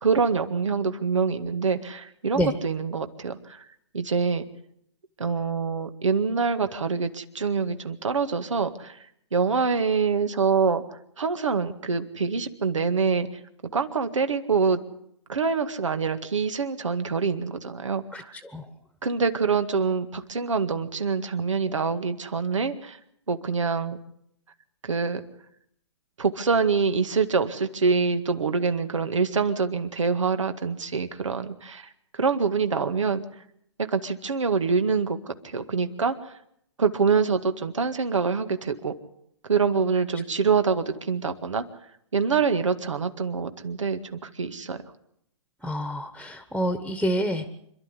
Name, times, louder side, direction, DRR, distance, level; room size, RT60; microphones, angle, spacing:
voice 1, 0.0-3.6 3.9-4.5 5.2-9.0 9.3-10.8 11.2-13.3 13.7-14.8 15.3-18.4 19.0-23.0 23.3-24.0 24.8-25.2 26.2-33.2 33.9-36.1 36.8-38.9 39.5-41.6 42.1-44.8, right 5 dB, 80° right, 8 dB, 2.0 m, -25 dB
voice 2, 18.1-18.7 40.1-40.2 45.6-47.5, equal, ahead, 9 dB, 1.4 m, -28 dB
27.0 x 12.0 x 9.9 m, 0.74 s
hypercardioid pair, 135°, 16 cm